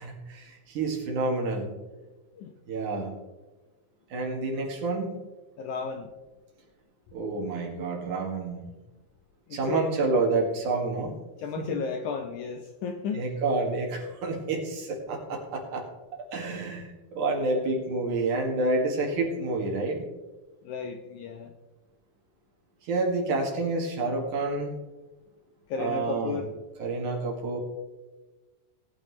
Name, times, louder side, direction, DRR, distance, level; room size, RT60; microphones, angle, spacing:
voice 1, 0.0-1.7 2.7-3.1 4.1-5.1 7.1-8.6 9.5-11.1 11.6-11.8 13.1-15.8 16.3-16.9 17.1-20.0 22.8-24.7 25.8-26.4 26.8-27.6, right 3 dB, 60° right, 0 dB, 3.3 m, -28 dB
voice 2, 5.6-6.1 9.5-9.9 11.4-13.4 20.6-21.5 25.7-26.5, left 5 dB, 75° left, 5 dB, 1.9 m, -33 dB
19.0 x 8.9 x 3.2 m, 1.2 s
omnidirectional pair, 4.1 m